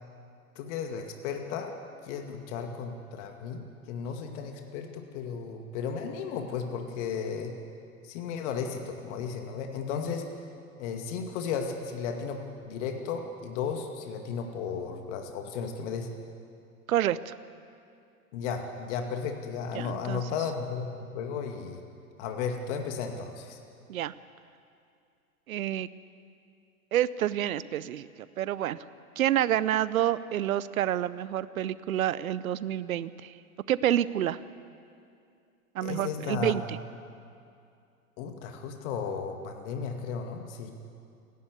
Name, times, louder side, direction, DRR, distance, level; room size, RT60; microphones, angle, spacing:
voice 1, 0.6-1.7 2.0-7.6 8.0-10.3 10.8-16.1 18.3-21.8 22.2-23.6 35.8-36.6 38.2-40.7, left 6 dB, 55° left, 4 dB, 2.2 m, -34 dB
voice 2, 16.9-17.3 19.7-20.2 23.9-24.1 25.5-25.9 26.9-28.1 28.4-28.8 29.2-33.3 33.7-34.4 35.7-36.8, right 11 dB, 70° right, 17 dB, 0.8 m, -28 dB
29.5 x 11.5 x 8.2 m, 2.4 s
figure-of-eight pair, 95°, 43 cm